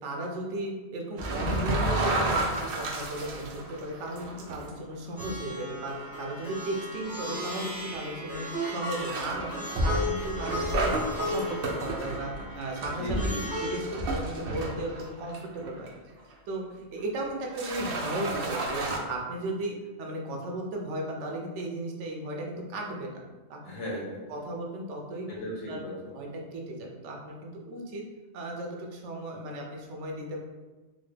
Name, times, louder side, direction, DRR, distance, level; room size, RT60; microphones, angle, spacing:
voice 1, 0.0-15.9 16.5-23.2 23.5-23.6 24.3-25.3 25.7-25.8 26.1-28.0 28.3-30.4, right 1 dB, 80° right, 0 dB, 1.0 m, -35 dB
sound 1, 1.2-4.7 5.2-5.4 6.0-6.2 7.0-7.1 8.6-15.9 16.3-16.4 17.2-17.3 17.5-19.0, right 2 dB, 60° right, 0.7 m, -31 dB
Plucked string instrument, 5.2-13.8, left 1 dB, 35° right, 1.5 m, -36 dB
voice 2, 13.0-13.4 23.6-24.2 25.3-26.1, left 1 dB, 75° left, -5 dB, 1.4 m, -36 dB
4.0 x 2.1 x 3.3 m, 1.2 s
omnidirectional pair, 1.2 m